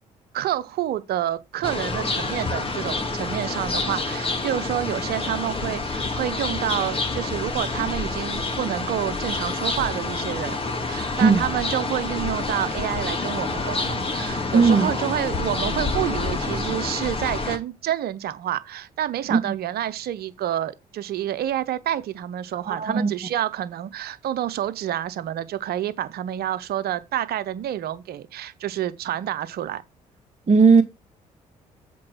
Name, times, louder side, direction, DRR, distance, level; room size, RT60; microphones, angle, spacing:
voice 1, 0.3-10.6 10.9-29.8, right 11 dB, 55° right, 0.8 m, -28 dB
sound 1, 1.6-17.6, left 3 dB, 30° left, 1.8 m, -28 dB
voice 2, 14.5-14.9 19.3-19.5 22.7-23.1 30.5-30.8, right 4 dB, 35° right, 1.4 m, -17 dB
7.6 x 4.4 x 5.7 m
hypercardioid pair, 45°, 19 cm